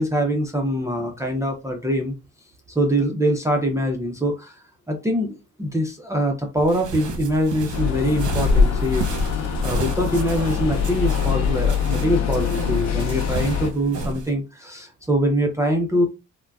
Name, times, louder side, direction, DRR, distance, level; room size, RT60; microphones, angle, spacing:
voice 1, 0.0-2.1 2.8-16.1, equal, 10° right, 1 dB, 0.5 m, -24 dB
sound 1, 6.6-14.3, right 4 dB, 75° right, 0.8 m, -33 dB
sound 2, 7.7-13.7, left 6 dB, 60° left, 0.8 m, -23 dB
3.6 x 2.2 x 2.3 m, 0.27 s
cardioid pair, 90°, 30 cm